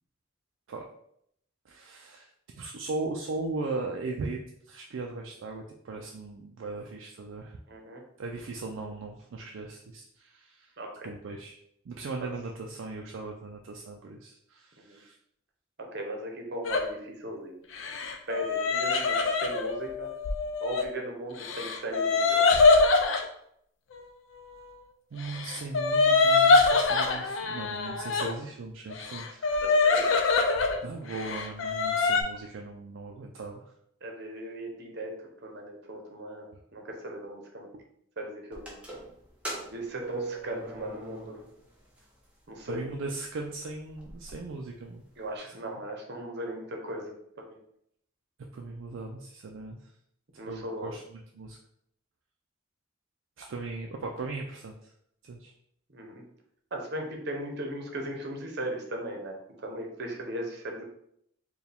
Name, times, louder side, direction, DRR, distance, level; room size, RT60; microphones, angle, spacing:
voice 1, 1.7-2.3 2.6-4.4 4.7-7.6 8.2-10.7 11.0-11.6 11.9-15.2 25.1-29.5 30.8-33.6 42.7-45.0 45.5-45.8 48.5-49.9 50.5-51.6 53.4-54.9 55.2-55.5, right 3 dB, 75° right, 1 dB, 0.4 m, -38 dB
voice 2, 7.7-8.0 10.8-11.1 12.2-12.3 14.9-15.0 15.9-17.6 18.3-20.1 20.6-22.5 29.6-30.1 34.0-37.8 38.2-38.8 39.7-41.4 42.5-42.8 45.2-47.6 50.4-50.9 55.9-56.2 56.7-60.8, right 1 dB, 55° right, 2 dB, 0.8 m, -38 dB
sound 1, 16.6-16.9 17.7-20.8 21.4-23.2 25.2-28.3 28.9-30.8 31.1-32.2, left 3 dB, 70° left, 0.5 m, -24 dB
sound 2, 38.5-41.7 42.0-42.1 42.9-43.0 43.4-43.5 43.7-44.3, right 2 dB, 5° right, 0.8 m, -40 dB
4.6 x 2.3 x 3.4 m, 0.72 s
head